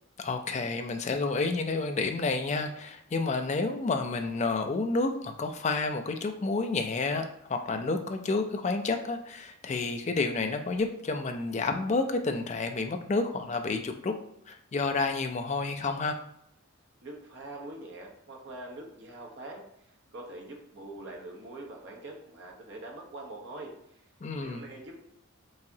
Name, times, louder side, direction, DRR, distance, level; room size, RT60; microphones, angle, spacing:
voice 1, 0.2-14.1 14.5-16.2 24.2-24.6, left 3 dB, 30° left, 6 dB, 0.3 m, -30 dB
voice 2, 17.0-24.0 24.3-25.1, right 2 dB, 55° right, -1 dB, 0.9 m, -44 dB
4.7 x 2.7 x 2.7 m, 0.77 s
head